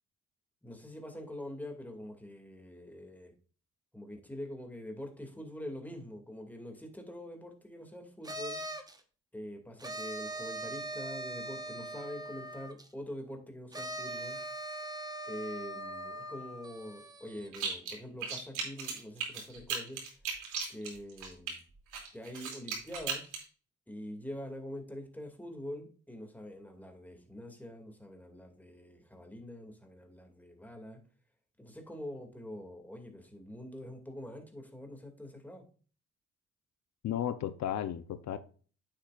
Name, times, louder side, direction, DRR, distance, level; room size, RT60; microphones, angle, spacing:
voice 1, 0.6-3.3 3.9-8.6 9.3-14.4 15.3-20.0 20.7-21.6 22.1-23.3 23.9-31.0 31.6-35.6, left 1 dB, 5° left, 3 dB, 2.4 m, -45 dB
sound 1, 8.2-9.0 9.8-12.9 13.7-17.6, right 1 dB, 15° right, 1.1 m, -41 dB
sound 2, 17.5-18.0 18.2-21.5 21.9-23.4, right 5 dB, 85° right, 2.8 m, -36 dB
voice 2, 37.0-38.4, left 10 dB, 65° left, 12 dB, 0.8 m, -34 dB
8.9 x 7.6 x 2.5 m, 0.40 s
cardioid pair, 90°, 30 cm